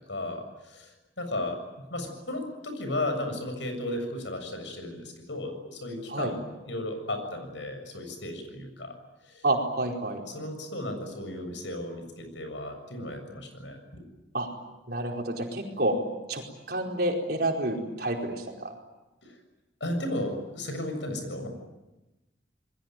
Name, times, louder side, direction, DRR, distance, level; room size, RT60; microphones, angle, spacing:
voice 1, 0.1-0.9 1.2-1.6 1.9-9.0 9.3-9.5 10.3-14.0 19.2-19.3 19.8-21.5, left 1 dB, 80° left, 6 dB, 7.1 m, -34 dB
voice 2, 9.4-10.2 14.3-14.5 14.9-16.0 16.3-18.8, right 1 dB, 55° right, 1 dB, 4.8 m, -29 dB
28.0 x 21.5 x 9.2 m, 1.0 s
head